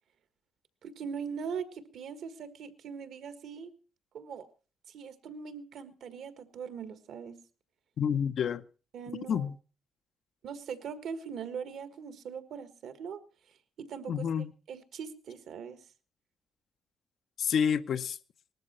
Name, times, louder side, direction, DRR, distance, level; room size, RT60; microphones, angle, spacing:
voice 1, 0.8-3.7 4.1-4.5 4.9-7.4 8.9-9.5 10.4-13.2 13.8-14.3 14.7-15.8, right 6 dB, 70° right, 1.6 m, -41 dB
voice 2, 8.0-8.6 9.3-9.6 14.1-14.5 17.4-18.2, left 7 dB, 65° left, 0.7 m, -29 dB
19.0 x 13.5 x 4.4 m
cardioid pair, 90°, 0 cm